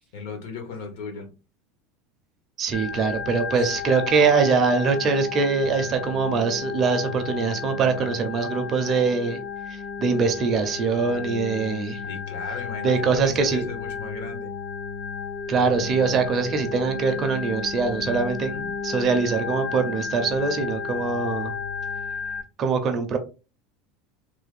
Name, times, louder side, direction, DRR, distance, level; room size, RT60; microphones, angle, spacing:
voice 1, 0.1-1.3 2.9-3.1 3.6-3.7 12.1-14.6 18.5-18.7, left 4 dB, 70° left, 1.2 m, -36 dB
voice 2, 2.6-9.4 10.0-12.0 12.8-13.6 15.5-21.5 22.6-23.2, right 5 dB, 25° right, 0.4 m, -23 dB
Organ, 2.7-22.4, left 6 dB, 50° left, 0.5 m, -33 dB
3.2 x 2.1 x 3.3 m
supercardioid pair, 175°, 0 cm